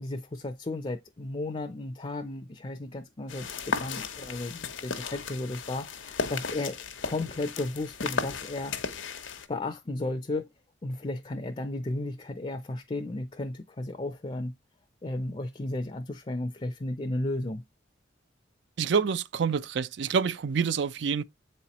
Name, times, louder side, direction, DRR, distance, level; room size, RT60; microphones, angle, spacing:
voice 1, 0.0-6.8 7.0-8.7 9.5-10.5 10.8-14.5 15.0-17.7, left 2 dB, 30° left, 0.5 m, -34 dB
sound 1, 3.3-9.5, left 5 dB, 80° left, 0.9 m, -35 dB
voice 2, 18.8-21.2, right 6 dB, 65° right, 0.4 m, -27 dB
7.6 x 4.3 x 2.9 m
head